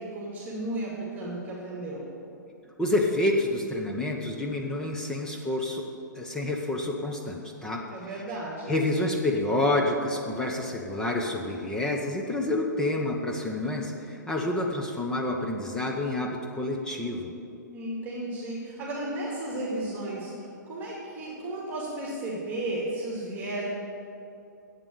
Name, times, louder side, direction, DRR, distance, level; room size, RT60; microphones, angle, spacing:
voice 1, 0.0-2.1 7.9-8.8 17.7-23.6, right 1 dB, 15° right, -5 dB, 2.5 m, -34 dB
voice 2, 2.8-5.8 6.1-7.8 8.7-17.4, left 1 dB, 5° left, -1 dB, 1.1 m, -28 dB
11.0 x 8.3 x 8.7 m, 2.6 s
figure-of-eight pair, 115°, 10 cm